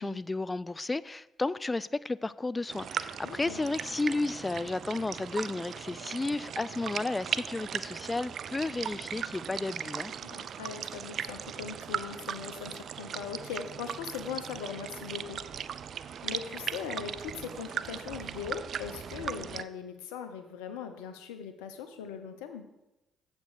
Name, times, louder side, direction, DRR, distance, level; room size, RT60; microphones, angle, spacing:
voice 1, 0.0-10.1, left 2 dB, 25° left, 0.3 m, -33 dB
sound 1, 2.7-19.6, right 8 dB, 60° right, 0.3 m, -38 dB
voice 2, 3.2-3.6 10.2-15.4 16.2-22.6, left 7 dB, 80° left, 0.7 m, -40 dB
7.5 x 5.3 x 6.6 m
hypercardioid pair, 50°, 0 cm